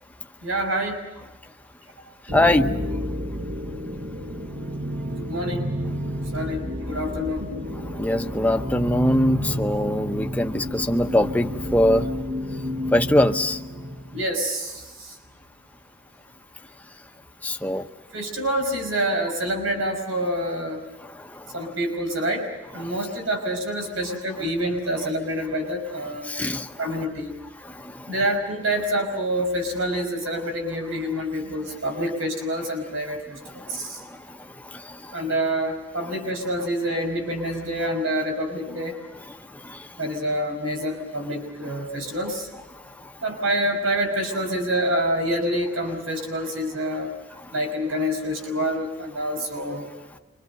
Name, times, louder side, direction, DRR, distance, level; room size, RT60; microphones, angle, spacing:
voice 1, 0.4-1.0 5.2-5.6 6.3-7.5 14.1-15.1 18.1-20.8 21.5-22.5 22.7-26.3 26.8-27.3 28.1-34.0 35.1-39.0 40.0-42.5 43.2-47.2 47.5-49.9, equal, 90° right, 3 dB, 5.5 m, -27 dB
voice 2, 2.3-2.7 7.9-12.1 12.9-13.6 17.4-17.9 21.0-21.7 22.8-22.9 26.2-26.8 27.6-28.1 33.5-34.4 34.6-35.1 39.3-39.9 43.0-43.1, left 1 dB, 10° left, 5 dB, 0.9 m, -23 dB
sound 1, 2.3-14.3, equal, 45° right, 1.4 m, -30 dB
28.0 x 25.5 x 6.7 m, 1.1 s
head